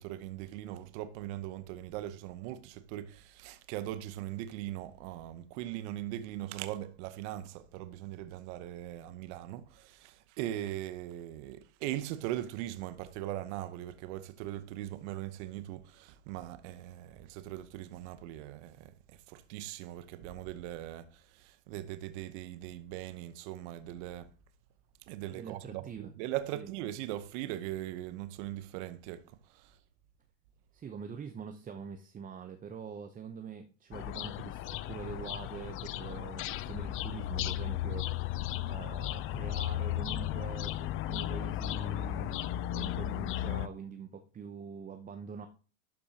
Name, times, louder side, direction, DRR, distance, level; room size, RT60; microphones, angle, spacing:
voice 1, 0.0-18.9 19.3-24.3 25.1-29.2 29.5-29.7, right 13 dB, 60° right, 0.9 m, -40 dB
voice 2, 25.3-26.1 26.5-26.7 30.7-38.4 38.6-45.5, right 6 dB, 20° right, 0.8 m, -44 dB
sound 1, 33.9-43.7, left 13 dB, 35° left, 0.4 m, -35 dB
12.0 x 5.4 x 2.8 m
hypercardioid pair, 105°, 38 cm